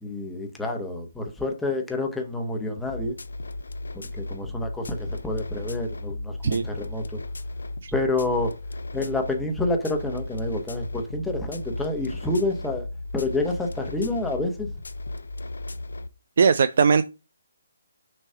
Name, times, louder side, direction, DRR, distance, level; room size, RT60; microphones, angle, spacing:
voice 1, 0.0-3.2 4.1-7.2 7.9-8.5 8.9-12.9 13.1-14.7, left 2 dB, 5° left, 1.1 m, -28 dB
sound 1, 2.8-16.1, left 2 dB, 75° left, 0.6 m, -35 dB
voice 2, 16.4-17.0, right 5 dB, 55° right, 0.4 m, -19 dB
6.4 x 3.0 x 5.6 m
figure-of-eight pair, 145°, 0 cm